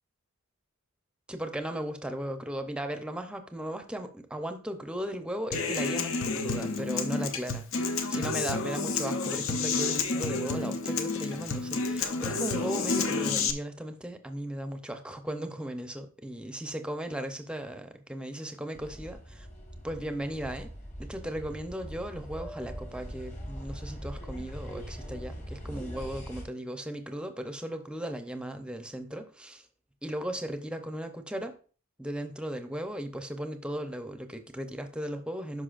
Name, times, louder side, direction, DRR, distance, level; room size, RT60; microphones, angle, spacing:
voice 1, 1.3-19.5 19.8-20.7 21.0-29.7 30.0-31.6 32.0-35.6, right 1 dB, 5° right, 0.6 m, -37 dB
Human voice / Acoustic guitar, 5.5-13.5, left 4 dB, 60° left, 0.7 m, -30 dB
sound 1, 18.7-26.4, equal, 30° left, 1.5 m, -41 dB
11.5 x 5.3 x 2.5 m
head